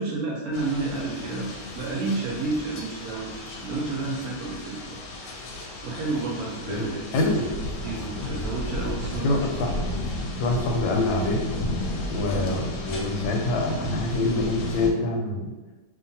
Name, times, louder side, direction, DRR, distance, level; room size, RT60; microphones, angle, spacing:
voice 1, 0.0-1.5 1.7-4.8 5.8-7.3 7.8-9.5, right 3 dB, 80° right, -3 dB, 0.8 m, -30 dB
sound 1, 0.5-14.9, left 2 dB, 75° left, 1.1 m, -34 dB
voice 2, 7.1-7.4 9.2-9.9 10.4-11.4 12.1-15.5, left 2 dB, 90° left, 1 dB, 1.3 m, -25 dB
2.8 x 2.6 x 2.6 m, 1.2 s
omnidirectional pair, 2.0 m